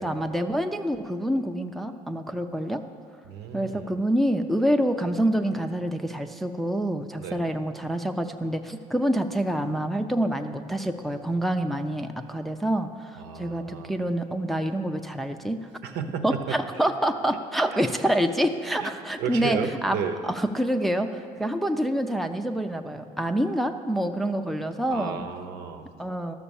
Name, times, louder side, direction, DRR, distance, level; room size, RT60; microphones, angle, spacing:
voice 1, 0.0-2.8 3.5-15.7 16.2-20.0 20.2-25.3 26.0-26.3, right 1 dB, ahead, 5 dB, 0.5 m, -27 dB
voice 2, 3.3-4.0 7.2-7.4 13.2-13.9 15.8-16.4 16.7-16.9 17.7-17.8 18.8-18.9 19.2-20.2 24.9-25.9, right 7 dB, 80° right, 6 dB, 0.9 m, -33 dB
12.5 x 6.5 x 7.1 m, 2.2 s
cardioid pair, 110°, 17 cm